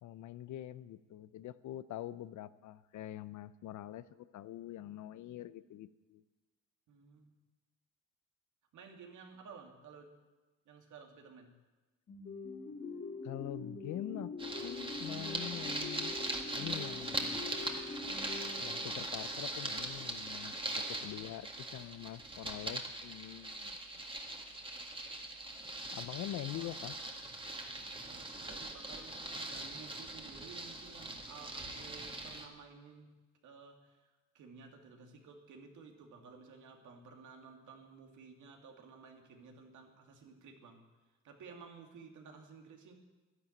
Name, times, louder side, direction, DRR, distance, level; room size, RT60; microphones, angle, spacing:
voice 1, 0.0-6.2 13.2-14.3 14.6-16.2 16.5-17.5 18.5-24.0 25.9-26.9, left 13 dB, 75° left, 15 dB, 0.7 m, -44 dB
voice 2, 6.9-7.3 8.7-10.1 10.7-11.5 21.0-21.3 26.5-27.1 28.1-33.2 33.4-40.8 41.2-42.9, right 5 dB, 75° right, 3 dB, 2.4 m, -54 dB
sound 1, 12.1-19.2, left 4 dB, 45° left, 3.2 m, -44 dB
sound 2, 14.4-32.5, right 2 dB, 15° right, 2.0 m, -41 dB
11.0 x 11.0 x 8.6 m, 1.2 s
cardioid pair, 90°, 30 cm